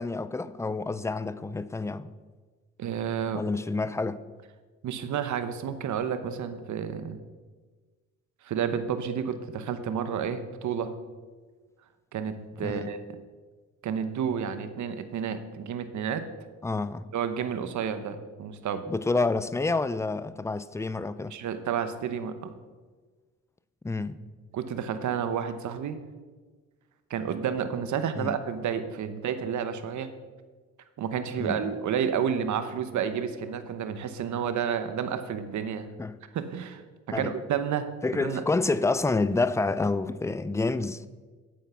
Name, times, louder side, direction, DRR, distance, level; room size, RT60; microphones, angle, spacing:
voice 1, 0.0-2.1 3.3-4.2 12.6-12.9 16.6-17.1 18.9-21.4 23.8-24.2 28.2-28.4 31.4-31.7 36.0-36.2 37.1-37.3 38.0-41.0, left 3 dB, 10° left, 0.5 m, -28 dB
voice 2, 2.8-3.4 4.8-7.2 8.4-10.9 12.1-13.0 13.8-16.2 17.1-18.9 21.3-22.5 24.5-26.0 27.1-30.1 31.0-35.9 36.3-36.8 37.1-38.4, right 7 dB, 65° right, 1.0 m, -30 dB
8.6 x 8.2 x 5.7 m
cardioid pair, 75°, 31 cm